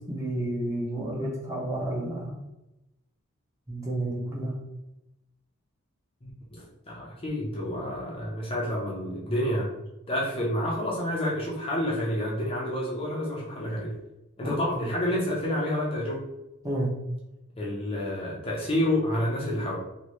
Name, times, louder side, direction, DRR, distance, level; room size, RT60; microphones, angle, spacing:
voice 1, 0.1-2.4 3.7-4.5 14.4-14.9 16.6-16.9, right 1 dB, 15° right, -5 dB, 0.9 m, -31 dB
voice 2, 6.2-9.7 10.1-13.9 14.4-16.2 17.6-19.8, left 1 dB, 25° left, -4 dB, 0.5 m, -29 dB
2.9 x 2.6 x 3.0 m, 0.93 s
head